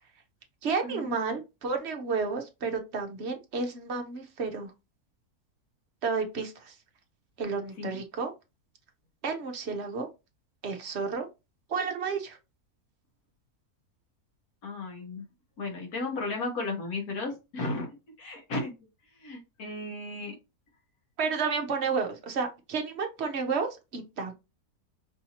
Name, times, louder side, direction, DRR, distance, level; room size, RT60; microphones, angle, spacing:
voice 1, 0.6-4.7 6.0-6.7 7.4-8.3 9.2-10.1 10.6-11.3 11.7-12.4 21.2-24.3, right 5 dB, 50° right, 0.9 m, -31 dB
voice 2, 14.6-15.2 15.6-18.8 19.2-20.3, left 2 dB, 70° left, 1.8 m, -34 dB
5.4 x 2.8 x 2.9 m
omnidirectional pair, 1.7 m